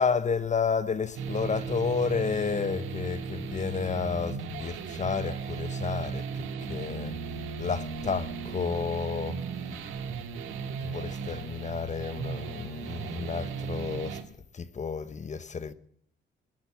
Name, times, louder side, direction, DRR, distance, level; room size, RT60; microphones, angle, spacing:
voice 1, 0.0-6.2 6.7-7.1 7.6-9.4 10.8-14.2 14.5-15.7, left 5 dB, 35° left, 1.0 m, -31 dB
sound 1, 1.1-14.2, right 5 dB, 90° right, 2.1 m, -36 dB
21.0 x 10.5 x 6.1 m
cardioid pair, 90°, 20 cm